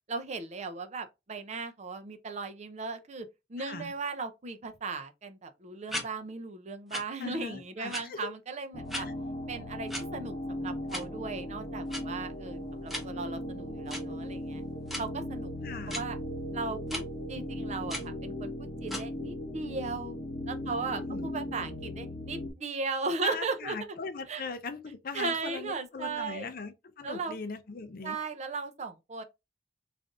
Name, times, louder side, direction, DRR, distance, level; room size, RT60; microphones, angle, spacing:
voice 1, 0.1-9.1 9.5-14.6 15.0-15.5 15.9-16.2 16.5-17.0 17.3-20.2 20.5-23.8 24.3-24.5 25.1-26.5 27.0-27.4 28.0-29.2, right 4 dB, 40° right, 0.6 m, -37 dB
sound 1, 5.9-6.1 6.9-7.0 7.9-8.0 8.9-9.0 9.9-10.0 10.9-11.0 11.9-12.0 12.9-13.0 13.9-14.0 14.9-15.0 15.9-16.0 16.9-17.0 17.9-18.1 18.9-19.0, equal, ahead, 0.9 m, -35 dB
voice 2, 7.2-8.3 9.0-9.1 15.6-16.0 20.7-21.3 23.2-28.2, left 4 dB, 55° left, 0.6 m, -40 dB
sound 2, 8.7-22.5, left 1 dB, 35° left, 0.9 m, -38 dB
3.3 x 2.5 x 3.7 m
head